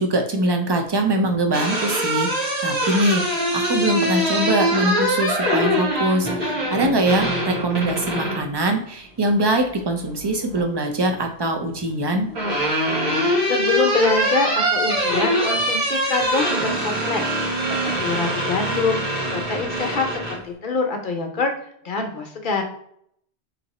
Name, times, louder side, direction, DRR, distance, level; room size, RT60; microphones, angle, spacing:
voice 1, 0.0-12.3, right 1 dB, 35° right, 4 dB, 0.4 m, -23 dB
sound 1, 1.2-8.5 10.0-10.6 11.9-20.4, equal, 80° right, 1.9 m, -23 dB
voice 2, 13.5-21.5 21.8-22.6, left 4 dB, 55° left, 3 dB, 0.8 m, -25 dB
4.0 x 2.8 x 4.1 m, 0.68 s
omnidirectional pair, 1.1 m